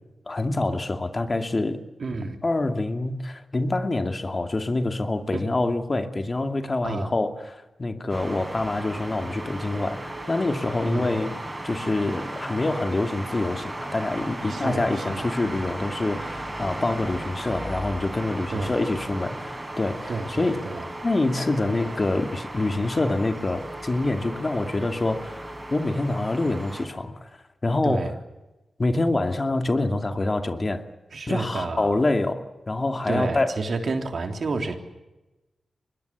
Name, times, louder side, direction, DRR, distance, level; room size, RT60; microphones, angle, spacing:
voice 1, 0.3-1.8 2.4-11.4 11.6-20.6 21.0-27.3 27.6-28.1 28.8-30.8 31.3-33.6, left 2 dB, 40° left, 2.5 m, -26 dB
voice 2, 2.0-2.4 5.3-5.6 6.8-7.1 10.8-11.1 14.5-15.3 18.5-18.7 20.1-20.9 27.8-28.1 31.1-32.0 33.1-34.8, right 3 dB, 65° right, 3.4 m, -30 dB
sound 1, 8.1-26.9, right 1 dB, 25° right, 8.0 m, -36 dB
25.0 x 21.5 x 8.4 m
cardioid pair, 45°, 0 cm